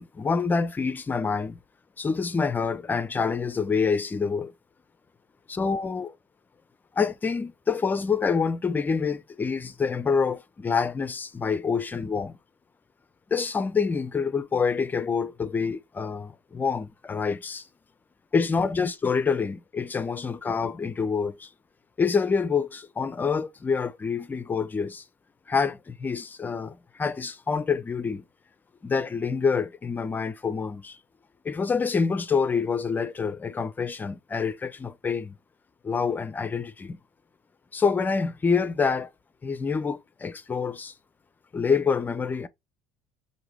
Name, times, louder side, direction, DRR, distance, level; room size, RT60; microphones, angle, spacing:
voice 1, 0.0-1.6 2.0-4.5 5.5-6.1 7.0-12.4 13.3-17.7 18.3-21.5 22.0-25.0 25.5-28.2 28.8-31.0 31.4-35.4 35.8-37.0 37.7-39.1 39.4-40.9 41.5-42.5, left 5 dB, 25° left, 0.5 m, -27 dB
4.8 x 2.6 x 2.9 m
hypercardioid pair, 65°, 8 cm